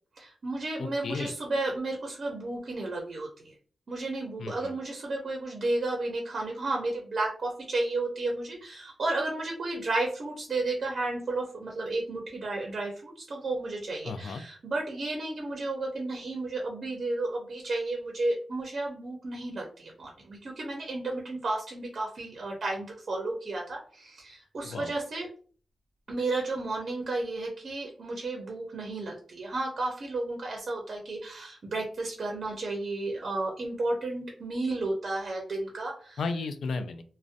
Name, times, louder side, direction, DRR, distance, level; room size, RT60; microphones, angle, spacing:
voice 1, 0.2-3.5 3.9-25.3 26.1-36.2, right 2 dB, 50° right, 0 dB, 0.5 m, -32 dB
voice 2, 0.8-1.3 4.4-4.7 14.0-14.4 24.6-24.9 36.2-37.0, left 4 dB, 80° left, 9 dB, 0.3 m, -34 dB
2.5 x 2.1 x 2.4 m, 0.43 s
wide cardioid pair, 140°, 0 cm